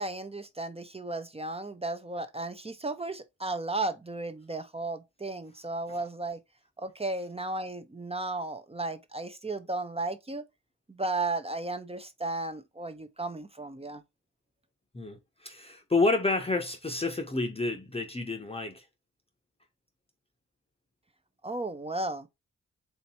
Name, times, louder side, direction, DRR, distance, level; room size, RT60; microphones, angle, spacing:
voice 1, 0.0-6.4 6.8-10.4 10.9-14.0 21.4-22.3, right 2 dB, 20° right, 0.6 m, -34 dB
voice 2, 14.9-18.8, left 3 dB, 20° left, 0.7 m, -29 dB
3.3 x 2.8 x 4.1 m
cardioid pair, 50°, 31 cm